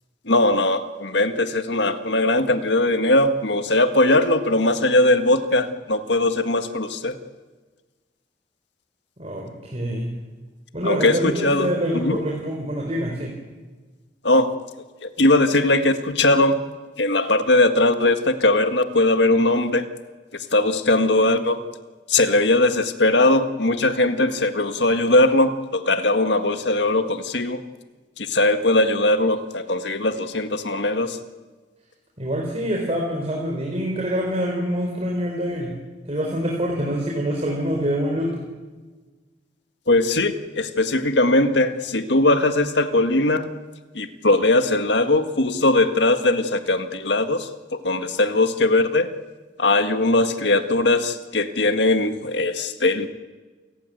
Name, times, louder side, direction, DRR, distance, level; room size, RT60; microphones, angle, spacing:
voice 1, 0.3-7.2 10.8-12.2 14.2-14.5 15.0-16.5 17.0-19.9 20.3-21.6 22.1-27.6 28.2-31.2 39.9-43.5 43.9-49.1 49.6-53.1, left 2 dB, 70° left, 8 dB, 1.8 m, -20 dB
voice 2, 9.2-10.1 10.7-13.3 32.2-35.7 36.1-38.4, equal, 35° right, -1 dB, 4.1 m, -25 dB
29.0 x 15.5 x 9.4 m, 1.3 s
head